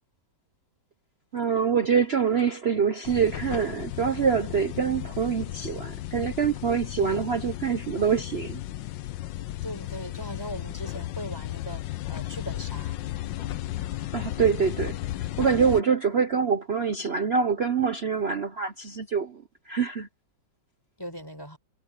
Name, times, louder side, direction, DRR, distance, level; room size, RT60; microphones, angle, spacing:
voice 1, 1.3-8.6 14.1-15.0 15.4-20.1, right 6 dB, 45° right, 0.9 m, -25 dB
sound 1, 3.0-15.8, left 14 dB, 85° left, 1.4 m, -35 dB
voice 2, 7.0-7.3 9.6-11.8 12.1-13.0 21.0-21.6, equal, 10° left, 6.1 m, -38 dB
omnidirectional pair, 2.0 m